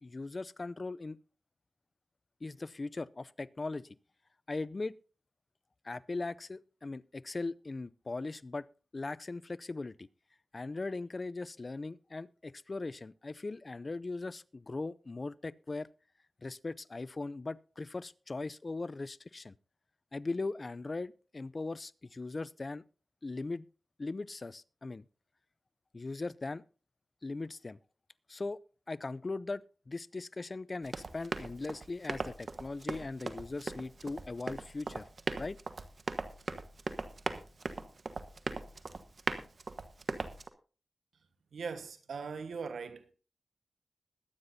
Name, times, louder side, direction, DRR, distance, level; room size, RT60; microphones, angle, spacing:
voice 1, 0.0-1.2 2.4-3.9 4.5-4.9 5.8-8.7 8.9-10.1 10.5-15.9 16.4-19.5 20.1-22.8 23.2-23.6 24.0-25.1 25.9-26.6 27.2-27.8 28.3-28.6 28.9-29.6 29.9-35.1 35.4-35.6, left 3 dB, 45° left, 0.5 m, -39 dB
Run, 30.8-40.5, right 3 dB, 60° right, 1.2 m, -39 dB
voice 2, 41.5-43.1, right 5 dB, 90° right, 1.3 m, -40 dB
21.5 x 9.7 x 2.7 m
cardioid pair, 55°, 0 cm